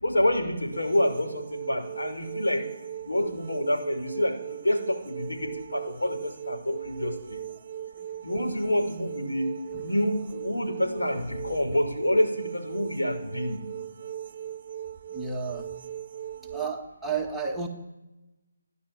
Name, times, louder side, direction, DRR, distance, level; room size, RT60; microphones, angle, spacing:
voice 1, 0.0-2.7 3.0-7.4 8.2-13.6, left 1 dB, 85° left, 3 dB, 5.9 m, -27 dB
sound 1, 0.7-16.7, right 10 dB, 40° right, 0.7 m, -39 dB
voice 2, 15.1-15.7 16.4-17.7, right 5 dB, 5° right, -3 dB, 1.8 m, -32 dB
28.5 x 11.0 x 9.6 m, 1.1 s
figure-of-eight pair, 155°, 0 cm